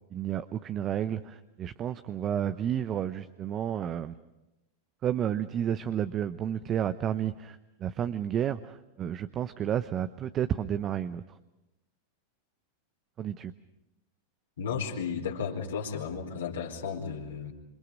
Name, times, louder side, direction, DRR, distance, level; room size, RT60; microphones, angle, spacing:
voice 1, 0.1-4.1 5.0-11.2 13.2-13.5, right 9 dB, 35° right, 12 dB, 0.8 m, -31 dB
voice 2, 14.6-17.5, left 6 dB, 75° left, -1 dB, 4.5 m, -34 dB
28.0 x 26.0 x 5.3 m, 0.96 s
hypercardioid pair, 95°, 0 cm